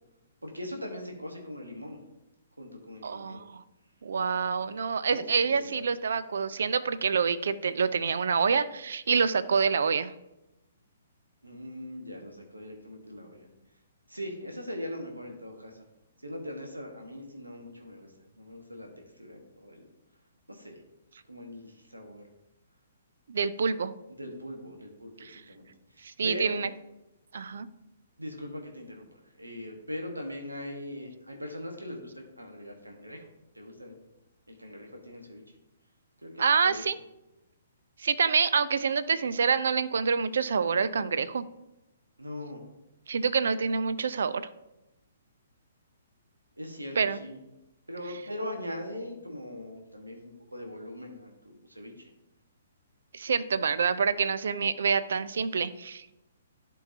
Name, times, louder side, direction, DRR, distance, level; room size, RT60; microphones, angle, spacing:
voice 1, 0.4-2.0 2.6-3.4 4.6-5.7 11.4-13.5 14.1-15.8 16.2-18.1 18.4-18.9 19.2-19.8 20.5-20.8 21.3-22.2 24.2-26.6 28.2-33.3 33.5-34.0 34.5-35.4 36.2-36.8 42.2-42.6 46.6-47.4 47.9-52.1, left 1 dB, 85° right, 3 dB, 1.2 m, -41 dB
voice 2, 3.0-3.6 4.0-10.1 23.3-23.9 25.2-25.4 26.0-26.7 27.3-27.7 36.4-37.0 38.0-41.4 43.1-44.4 47.0-47.2 53.1-56.1, right 5 dB, 60° right, 14 dB, 0.4 m, -27 dB
11.0 x 4.6 x 2.8 m, 0.92 s
figure-of-eight pair, 125°, 0 cm